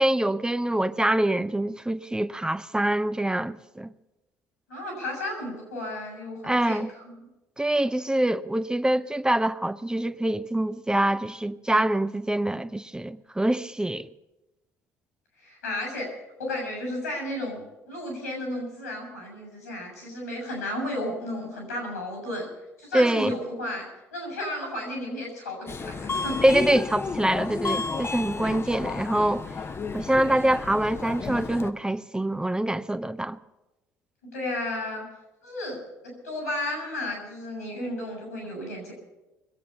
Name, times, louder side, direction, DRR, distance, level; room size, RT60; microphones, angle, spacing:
voice 1, 0.0-3.9 6.4-6.9 7.6-14.1 22.9-23.4 26.4-29.5 29.9-33.4, right 1 dB, 10° right, 0.6 m, -25 dB
voice 2, 4.7-7.2 15.4-16.1 16.4-22.5 22.8-23.9 24.1-26.4 34.3-35.0 35.4-38.9, left 1 dB, 90° left, 6.7 m, -33 dB
Subway metro underground, 25.7-31.7, left 4 dB, 30° left, 0.8 m, -32 dB
22.0 x 8.5 x 7.0 m
figure-of-eight pair, 50°, 8 cm